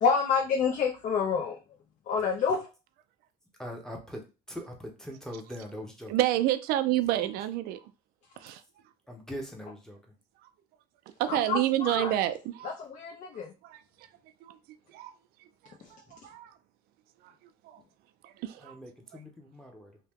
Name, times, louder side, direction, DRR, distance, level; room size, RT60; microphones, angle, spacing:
voice 1, 0.0-1.6 2.1-2.6 11.3-12.1 12.6-13.5, left 5 dB, 50° left, 0.6 m, -28 dB
voice 2, 3.6-6.1 9.1-10.0 18.6-20.0, equal, 5° left, 0.8 m, -42 dB
voice 3, 6.1-7.8 8.4-8.6 11.2-12.7 13.6-13.8 14.4-14.6 14.9-15.1 16.1-16.5 17.7-17.8 18.2-18.7, right 13 dB, 65° right, 0.4 m, -28 dB
2.8 x 2.2 x 3.5 m
cardioid pair, 110°, 17 cm